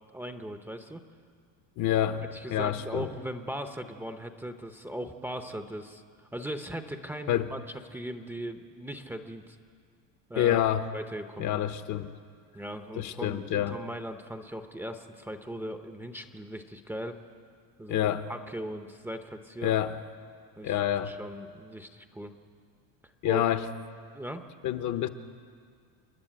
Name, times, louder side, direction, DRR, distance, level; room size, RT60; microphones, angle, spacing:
voice 1, 0.1-1.0 2.3-7.6 7.9-9.6 10.3-10.6 10.9-11.6 12.5-17.2 17.8-19.7 20.6-22.3 23.2-23.4 24.1-24.4, equal, 5° right, 6 dB, 0.7 m, -39 dB
voice 2, 1.8-3.1 7.3-7.5 10.4-10.8 11.4-12.1 13.0-13.8 17.9-18.2 19.6-19.9 20.6-21.1 23.2-23.7 24.6-25.1, left 11 dB, 50° left, 10 dB, 0.9 m, -27 dB
29.5 x 10.5 x 9.0 m, 2.1 s
cardioid pair, 150°, 40 cm